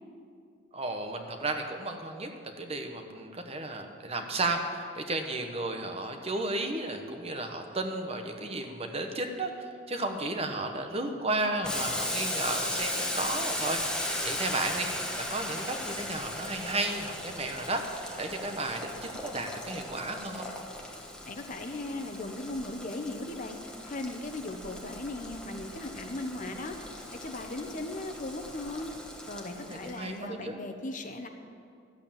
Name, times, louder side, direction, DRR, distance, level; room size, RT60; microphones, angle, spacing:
voice 1, 0.7-2.3 2.6-20.5 29.6-30.6, right 2 dB, 30° right, 5 dB, 1.1 m, -33 dB
Boiling, 11.6-30.1, left 1 dB, 5° left, 1.3 m, -37 dB
voice 2, 21.3-28.9 29.3-31.3, left 2 dB, 40° left, 5 dB, 1.0 m, -38 dB
13.5 x 8.1 x 8.9 m, 2.3 s
head